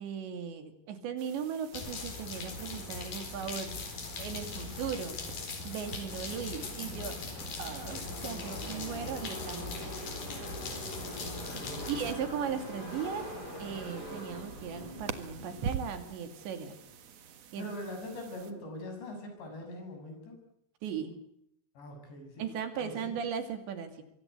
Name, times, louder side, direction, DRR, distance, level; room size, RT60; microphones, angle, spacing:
voice 1, 0.0-3.8 4.2-5.2 5.6-7.2 7.6-9.9 11.1-13.3 13.6-16.8 17.5-17.7 20.8-21.1 22.4-24.0, right 7 dB, 75° right, 9 dB, 4.8 m, -38 dB
sound 1, 1.2-18.5, right 7 dB, 60° right, 1.8 m, -46 dB
sound 2, 1.7-12.1, left 4 dB, 50° left, 5.7 m, -40 dB
Car passing by / Race car auto racing, 6.7-17.2, left 1 dB, 20° left, 6.8 m, -45 dB
voice 2, 11.5-11.8 17.6-20.4 21.8-22.4 22.8-23.1, left 1 dB, 70° left, 4 dB, 9.5 m, -42 dB
24.5 x 24.0 x 8.2 m, 0.76 s
omnidirectional pair, 5.1 m